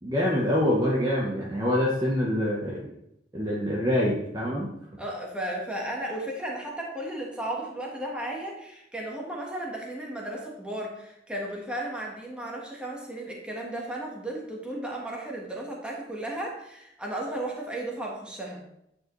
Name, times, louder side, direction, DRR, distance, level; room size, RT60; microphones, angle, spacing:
voice 1, 0.0-2.9 3.3-4.7, left 1 dB, 20° right, -4 dB, 0.9 m, -25 dB
voice 2, 5.0-18.6, right 1 dB, 5° right, -2 dB, 1.3 m, -34 dB
9.0 x 4.8 x 3.1 m, 0.80 s
head